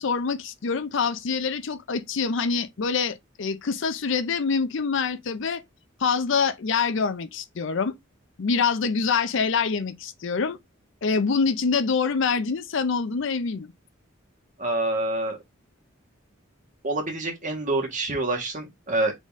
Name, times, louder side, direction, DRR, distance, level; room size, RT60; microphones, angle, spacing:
voice 1, 0.0-5.6 6.0-8.0 8.4-10.6 11.0-13.7, left 5 dB, 65° left, 0.5 m, -25 dB
voice 2, 14.6-15.4 16.8-19.2, right 2 dB, 40° right, 1.5 m, -27 dB
4.0 x 3.5 x 3.6 m
head